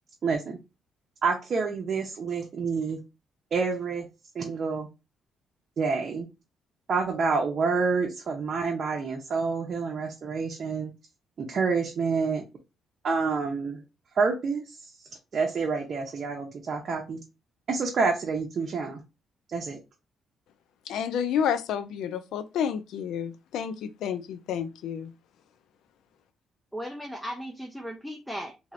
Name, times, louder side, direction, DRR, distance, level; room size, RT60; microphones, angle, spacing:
voice 1, 0.2-0.6 1.2-3.0 3.5-4.1 4.3-4.9 5.8-6.2 6.9-10.9 11.4-12.4 13.0-13.8 14.2-14.6 15.3-17.2 17.7-19.0 19.5-19.8, right 4 dB, 50° right, 0.7 m, -28 dB
voice 2, 20.9-25.1, left 8 dB, 80° left, 0.3 m, -30 dB
voice 3, 26.7-28.7, equal, ahead, 0.5 m, -37 dB
2.7 x 2.5 x 3.1 m
cardioid pair, 90°, 0 cm